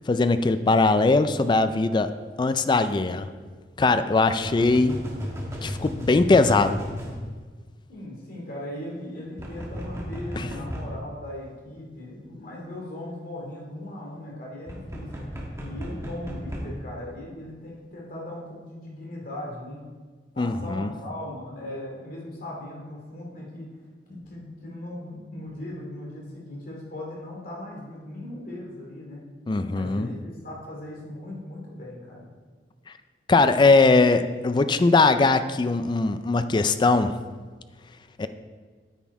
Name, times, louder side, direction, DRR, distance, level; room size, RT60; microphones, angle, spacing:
voice 1, 0.1-2.1 2.4-3.3 3.8-5.0 5.6-6.8 10.4-10.5 20.4-20.9 29.5-30.1 33.3-37.2 38.2-38.3, left 3 dB, 25° left, 11 dB, 0.3 m, -20 dB
sound 1, 2.5-2.6 4.4-7.2 9.4-10.9 14.7-16.7, equal, 15° right, 1.3 m, -34 dB
voice 2, 7.9-15.1 15.6-19.8 20.3-23.7 24.1-29.2 29.7-32.3, left 1 dB, 55° left, -3 dB, 2.4 m, -38 dB
9.1 x 6.2 x 4.8 m, 1.5 s
head